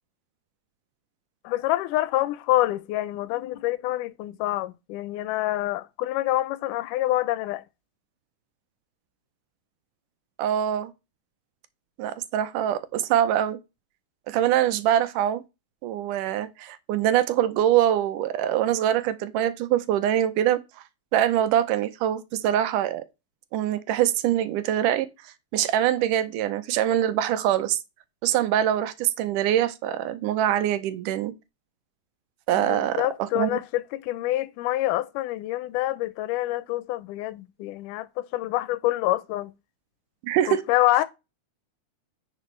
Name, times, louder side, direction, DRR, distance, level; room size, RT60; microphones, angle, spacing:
voice 1, 1.4-7.6 32.5-39.5 40.5-41.0, left 16 dB, 85° left, 2.1 m, -26 dB
voice 2, 10.4-10.9 12.0-13.6 14.3-15.4 15.8-20.6 21.1-23.0 23.5-27.8 28.2-31.3 32.5-33.6 40.2-40.6, right 11 dB, 85° right, 2.2 m, -24 dB
10.0 x 5.3 x 3.2 m
omnidirectional pair, 3.7 m